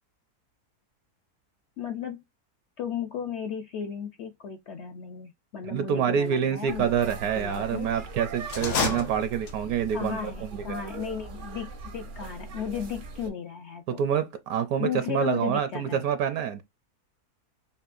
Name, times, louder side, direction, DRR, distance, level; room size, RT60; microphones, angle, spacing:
voice 1, 1.8-2.2 2.8-7.9 9.9-14.0 14.8-16.0, left 7 dB, 65° left, 0.7 m, -35 dB
voice 2, 5.7-10.6 13.9-16.6, right 8 dB, 75° right, 1.0 m, -27 dB
sound 1, 6.7-13.3, right 4 dB, 55° right, 0.6 m, -40 dB
sound 2, 8.4-9.8, left 4 dB, 85° left, 1.5 m, -30 dB
5.4 x 2.2 x 2.4 m
omnidirectional pair, 1.6 m